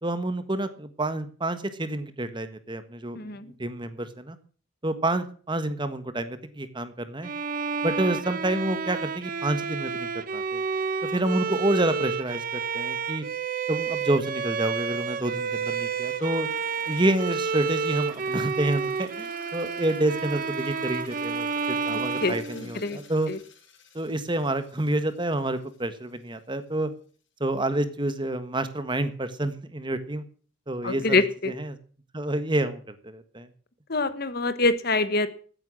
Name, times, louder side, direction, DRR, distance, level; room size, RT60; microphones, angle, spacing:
voice 1, 0.0-4.4 4.8-7.3 7.8-10.6 11.1-13.2 13.7-16.5 16.9-23.3 23.9-26.9 27.4-30.2 30.7-31.2 31.6-31.8 32.1-33.5, right 1 dB, 25° right, 11 dB, 1.4 m, -28 dB
voice 2, 3.1-3.5 21.9-23.0 23.3-23.4 30.8-31.5 33.9-35.3, left 3 dB, 55° left, 12 dB, 1.3 m, -25 dB
Bowed string instrument, 7.2-23.1, right 5 dB, 45° right, 0.9 m, -30 dB
sound 1, 15.1-25.9 26.3-26.4, left 3 dB, 70° left, 4.0 m, -49 dB
15.5 x 9.2 x 6.2 m, 0.42 s
head